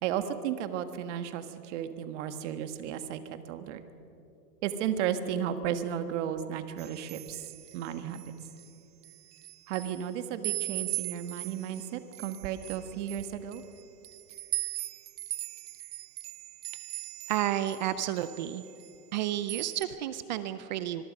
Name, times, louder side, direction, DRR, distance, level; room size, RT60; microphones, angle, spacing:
voice 1, 0.0-3.8 4.6-7.5 7.7-8.2 9.7-13.6, right 9 dB, 45° right, 9 dB, 1.6 m, -34 dB
sound 1, 6.8-8.7 9.0-10.1 10.4-17.9 18.2-19.2 19.5-19.8, right 15 dB, 80° right, 0.7 m, -39 dB
voice 2, 17.3-18.6 19.1-21.0, right 12 dB, 30° right, 13 dB, 0.5 m, -31 dB
25.0 x 22.0 x 5.3 m, 2.8 s
hypercardioid pair, 140°, 48 cm